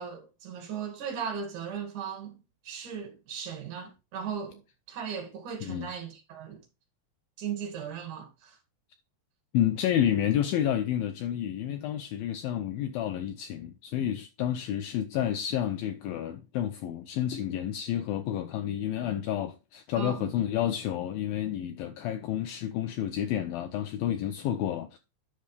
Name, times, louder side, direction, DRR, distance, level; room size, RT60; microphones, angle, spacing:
voice 1, 0.0-4.6 4.9-6.6 7.4-8.6 19.9-20.3, right 7 dB, 50° right, 3.4 m, -37 dB
voice 2, 9.5-25.0, left 10 dB, 85° left, 2.0 m, -30 dB
10.0 x 6.3 x 3.3 m
omnidirectional pair, 5.0 m